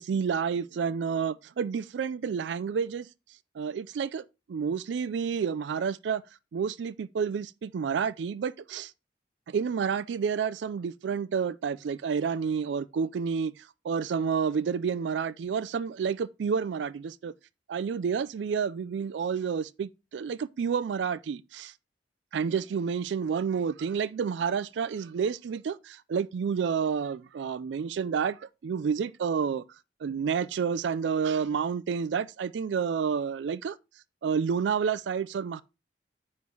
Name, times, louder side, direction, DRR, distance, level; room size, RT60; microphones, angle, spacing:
voice 1, 0.0-3.1 3.6-6.2 6.5-8.9 9.5-17.3 17.7-21.7 22.3-29.7 30.0-33.8 34.2-35.6, right 6 dB, 85° right, 0.4 m, -30 dB
9.3 x 3.2 x 5.4 m
head